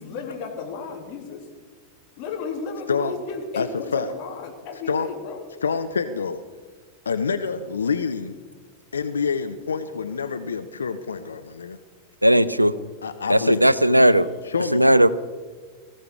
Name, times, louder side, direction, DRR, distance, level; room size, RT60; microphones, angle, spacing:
voice 1, 0.0-1.5 2.2-5.4, left 5 dB, 45° left, 2 dB, 3.2 m, -33 dB
voice 2, 3.6-4.1 4.9-5.1 5.6-6.4 7.1-8.4 8.9-11.8 13.0-13.7 14.4-14.8, left 5 dB, 70° left, 11 dB, 0.7 m, -27 dB
voice 3, 12.2-12.7 13.3-14.3 14.7-15.1, right 1 dB, 90° right, 17 dB, 0.6 m, -16 dB
19.0 x 15.0 x 4.8 m, 1.5 s
figure-of-eight pair, 90°, 0 cm